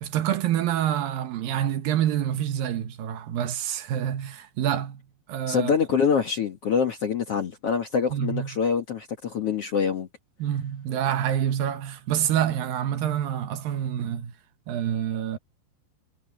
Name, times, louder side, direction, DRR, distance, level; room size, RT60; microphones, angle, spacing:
voice 1, 0.0-5.0 5.3-5.7 8.1-8.6 10.4-14.3 14.7-15.4, right 10 dB, 70° right, 2.4 m, -27 dB
voice 2, 5.5-10.1, left 6 dB, 65° left, 1.4 m, -25 dB
omnidirectional pair, 5.2 m